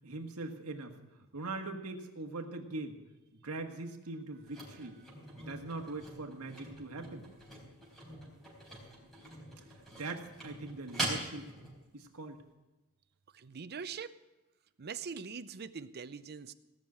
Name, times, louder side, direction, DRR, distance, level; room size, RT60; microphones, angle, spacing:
voice 1, 0.0-1.0 1.3-3.0 3.3-5.0 5.4-7.3 10.0-11.5 11.9-12.4, right 2 dB, 80° right, 4 dB, 1.6 m, -41 dB
sound 1, 4.4-11.8 12.3-12.4, right 1 dB, ahead, 4.2 m, -43 dB
voice 2, 13.3-14.1 14.8-16.5, right 6 dB, 45° right, 13 dB, 0.6 m, -42 dB
17.0 x 6.5 x 8.5 m, 1.1 s
head